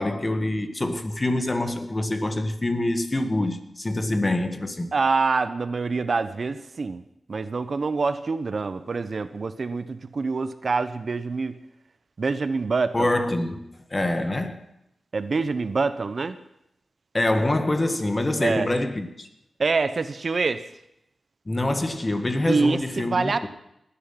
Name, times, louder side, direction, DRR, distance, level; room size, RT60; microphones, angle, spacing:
voice 1, 0.0-4.9 12.9-14.6 17.1-19.3 21.5-23.5, left 1 dB, 30° left, 1.7 m, -25 dB
voice 2, 4.9-7.0 7.3-11.5 12.2-13.1 15.1-16.4 18.4-18.7 19.6-20.6 22.5-23.5, right 4 dB, 55° right, 0.8 m, -25 dB
19.0 x 10.0 x 5.8 m
cardioid pair, 70°, 0 cm